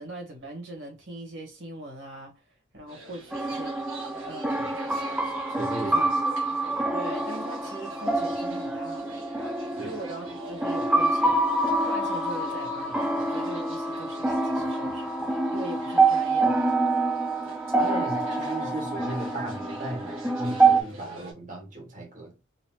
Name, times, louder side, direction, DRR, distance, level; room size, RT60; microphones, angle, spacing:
voice 1, 0.0-2.4 2.7-3.8 4.2-4.8 5.8-6.0 6.4-9.1 9.8-16.7, right 2 dB, 65° right, 1.6 m, -41 dB
sound 1, 2.9-21.3, right 2 dB, 85° right, 1.4 m, -45 dB
sound 2, 3.3-20.8, right 2 dB, 5° right, 0.3 m, -26 dB
voice 2, 5.6-6.1 9.8-9.9 17.8-22.3, right 2 dB, 40° right, 1.2 m, -36 dB
4.1 x 2.6 x 2.2 m
head